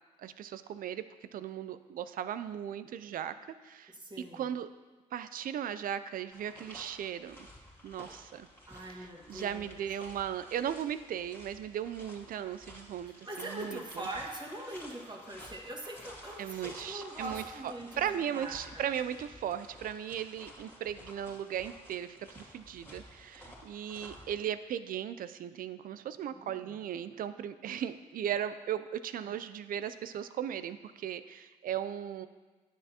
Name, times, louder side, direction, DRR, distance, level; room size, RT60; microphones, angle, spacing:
voice 1, 0.2-3.3 3.6-3.9 4.3-4.7 5.1-7.4 7.8-8.5 9.0-14.0 16.4-17.4 18.0-32.3, right 9 dB, 60° right, 12 dB, 0.4 m, -37 dB
voice 2, 3.9-4.5 8.7-9.8 13.0-18.9 26.3-26.8 29.2-29.4, right 1 dB, 25° right, -1 dB, 1.7 m, -43 dB
sound 1, 6.3-24.3, left 1 dB, 10° left, 2.4 m, -52 dB
10.0 x 6.8 x 2.9 m, 1.3 s
supercardioid pair, 55°, 16 cm